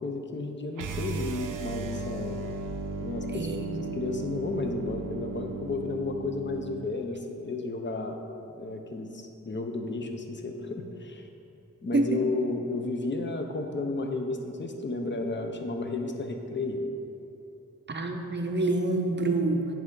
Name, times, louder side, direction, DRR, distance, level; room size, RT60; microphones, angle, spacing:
voice 1, 0.0-2.4 3.0-8.2 8.5-11.3 11.8-16.8, left 3 dB, 35° left, 4 dB, 0.6 m, -33 dB
sound 1, 0.7-6.9, right 3 dB, 80° right, 0.5 m, -35 dB
voice 2, 3.3-3.7 11.9-12.2 17.9-19.7, right 2 dB, 35° right, 4 dB, 0.6 m, -27 dB
9.2 x 3.6 x 3.7 m, 2.8 s
wide cardioid pair, 85°, 31 cm